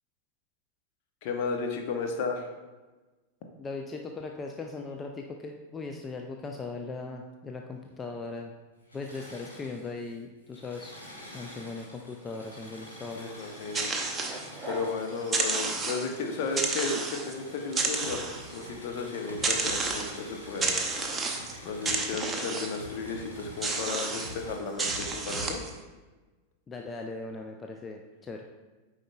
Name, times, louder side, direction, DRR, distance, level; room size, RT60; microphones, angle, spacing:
voice 1, 1.2-2.5 13.2-13.9 14.7-18.3 18.5-21.2 21.6-25.6, left 4 dB, 45° left, 3 dB, 0.8 m, -34 dB
voice 2, 3.6-8.5 8.9-11.0 11.3-13.4 26.7-28.4, left 3 dB, 20° left, 3 dB, 0.4 m, -39 dB
Engine / Mechanisms, 8.8-10.1 10.4-24.6, equal, 85° left, 1.9 m, -48 dB
sound 1, 13.4-14.9 15.2-16.2 16.6-17.3 17.7-18.7 19.4-20.2 20.6-21.6 21.9-22.8 23.6-24.3 24.8-25.7, right 3 dB, 15° right, 0.7 m, -31 dB
sound 2, 18.0-25.6, right 1 dB, 75° right, 0.6 m, -46 dB
8.8 x 4.8 x 2.3 m, 1.2 s
figure-of-eight pair, 90°, 0 cm